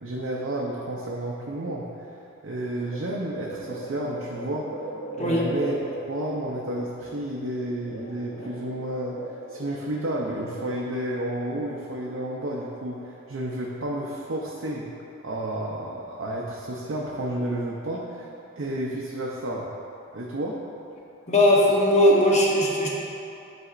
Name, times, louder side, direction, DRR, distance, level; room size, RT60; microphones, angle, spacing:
voice 1, 0.0-4.9 5.2-5.8 6.1-14.9 15.2-18.3 18.6-19.7 20.1-20.6, right 1 dB, 60° right, -4 dB, 0.6 m, -31 dB
sound 1, 2.8-3.1 3.3-8.7 9.1-10.8 11.3-11.6, right 1 dB, 75° left, 0.9 m, -38 dB
voice 2, 21.3-22.9, left 1 dB, 35° left, -3 dB, 0.8 m, -19 dB
9.5 x 4.1 x 2.5 m, 2.9 s
head